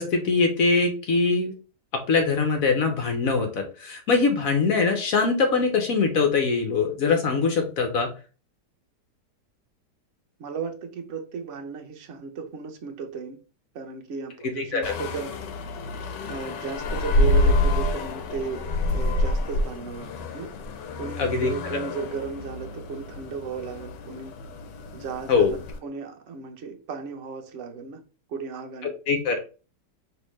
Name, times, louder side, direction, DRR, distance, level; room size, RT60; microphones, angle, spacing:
voice 1, 0.0-1.5 2.1-8.1 14.6-14.9 21.2-21.5 25.3-25.5 29.1-29.4, left 4 dB, 60° left, 1.0 m, -22 dB
voice 2, 10.4-13.4 13.7-15.4 16.3-20.5 21.0-24.4 24.9-28.0 28.3-28.9, right 5 dB, 55° right, 0.9 m, -35 dB
sound 1, 14.8-25.8, left 1 dB, 85° left, 1.3 m, -27 dB
5.3 x 2.9 x 3.1 m
omnidirectional pair, 1.9 m